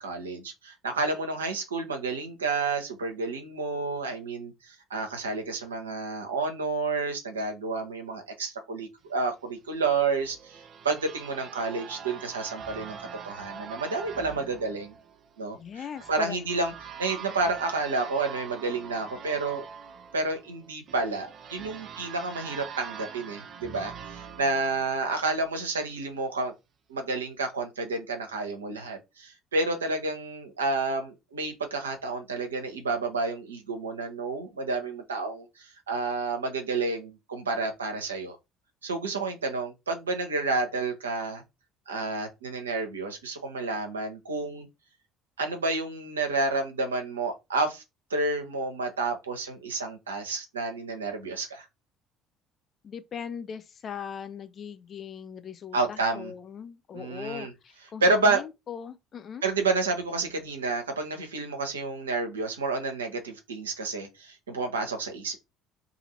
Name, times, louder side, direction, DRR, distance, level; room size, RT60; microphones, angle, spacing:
voice 1, 0.0-13.0 13.2-15.0 15.4-15.6 16.1-16.7 17.0-19.6 20.1-26.5 26.9-38.4 38.8-41.4 41.9-44.7 45.4-47.8 48.1-51.7 55.7-56.3 56.9-57.5 58.0-58.4 59.4-65.4, right 3 dB, 80° right, 0.8 m, -30 dB
sound 1, 9.9-25.6, right 7 dB, 45° right, 0.5 m, -43 dB
voice 2, 15.5-16.4 52.8-59.4, left 7 dB, 40° left, 0.5 m, -39 dB
2.8 x 2.6 x 4.1 m
figure-of-eight pair, 55°, 0 cm